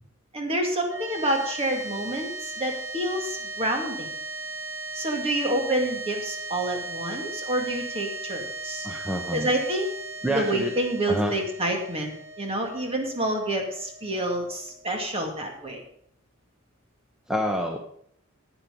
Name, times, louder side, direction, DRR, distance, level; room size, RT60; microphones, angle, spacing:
voice 1, 0.3-4.1 4.9-8.9 9.3-9.9 10.3-15.8, right 1 dB, 25° right, 2 dB, 2.1 m, -28 dB
sound 1, 0.8-15.3, right 2 dB, 55° right, 2.0 m, -37 dB
voice 2, 8.8-9.5 10.2-10.7 11.1-11.4 17.3-17.8, equal, 5° right, 1 dB, 0.8 m, -27 dB
10.5 x 9.1 x 5.2 m, 0.66 s
head